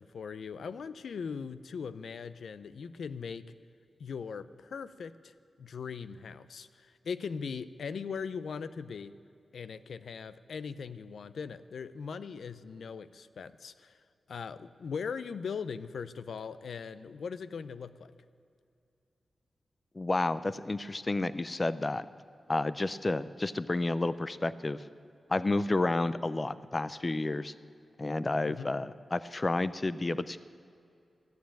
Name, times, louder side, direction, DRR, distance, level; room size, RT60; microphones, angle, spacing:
voice 1, 0.0-3.5 4.0-9.1 9.5-13.9 14.3-18.1 28.5-28.7, left 6 dB, 85° left, 13 dB, 0.5 m, -40 dB
voice 2, 20.0-22.1 22.5-24.8 25.3-27.5 28.0-30.4, left 2 dB, 30° left, 15 dB, 0.4 m, -30 dB
14.0 x 9.3 x 8.7 m, 2.5 s
wide cardioid pair, 95°, 0 cm